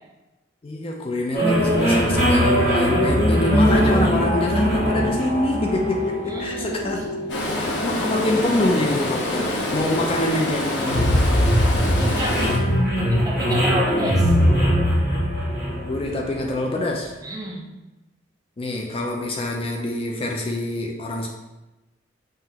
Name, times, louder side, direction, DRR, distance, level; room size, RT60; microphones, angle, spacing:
voice 1, 0.6-7.2 7.5-11.1 15.8-17.1 18.6-21.3, left 1 dB, 30° left, 0 dB, 0.4 m, -26 dB
sound 1, 1.3-16.8, equal, 55° left, 1.3 m, -21 dB
voice 2, 6.2-7.0 11.8-14.3 17.2-17.6, equal, 20° right, -2 dB, 0.6 m, -30 dB
Stream, 7.3-12.6, left 1 dB, 75° left, 0.7 m, -26 dB
5.6 x 2.5 x 2.8 m, 1.0 s
head